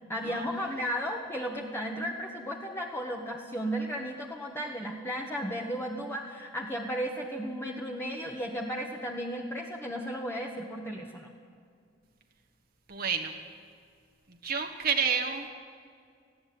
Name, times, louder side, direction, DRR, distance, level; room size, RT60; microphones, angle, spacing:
voice 1, 0.1-11.3, equal, 15° left, -1 dB, 1.5 m, -34 dB
voice 2, 12.9-13.3 14.4-15.5, right 6 dB, 55° right, 3 dB, 1.4 m, -29 dB
19.0 x 15.5 x 9.5 m, 2.2 s
head